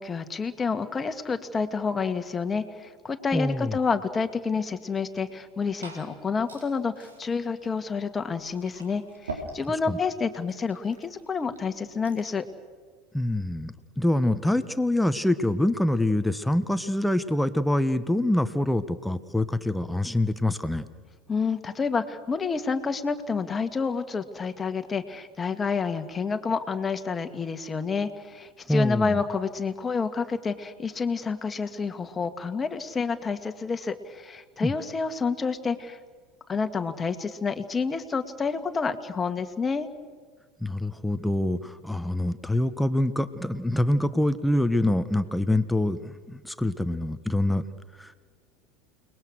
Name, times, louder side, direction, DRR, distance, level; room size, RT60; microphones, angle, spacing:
voice 1, 0.0-12.5 21.3-36.0 36.5-39.9, left 5 dB, 25° left, 7 dB, 2.0 m, -29 dB
voice 2, 3.3-3.8 9.9-10.0 13.1-20.9 28.7-29.2 34.6-34.7 40.6-47.6 48.0-48.2, left 1 dB, 5° left, 12 dB, 1.3 m, -25 dB
Glass / Fill (with liquid), 5.3-12.4, right 2 dB, 90° right, 4.0 m, -45 dB
29.5 x 20.5 x 6.4 m, 1.5 s
hypercardioid pair, 80°, 0 cm